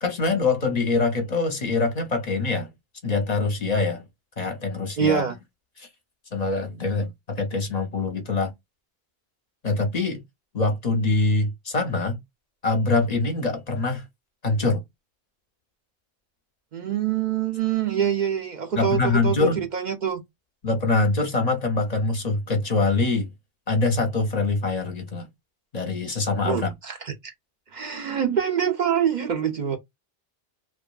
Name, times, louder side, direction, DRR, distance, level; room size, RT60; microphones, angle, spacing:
voice 1, 0.0-2.7 3.0-4.0 4.4-5.3 5.8-5.9 6.3-8.5 9.6-10.2 10.5-12.2 12.6-14.0 14.4-14.8 18.8-19.6 20.6-23.3 23.7-25.3 25.7-26.7, left 3 dB, 45° left, 0.7 m, -24 dB
voice 2, 5.0-5.4 16.7-20.2 26.4-27.3 27.7-29.8, right 8 dB, 55° right, 0.6 m, -25 dB
2.9 x 2.3 x 2.2 m
omnidirectional pair, 1.0 m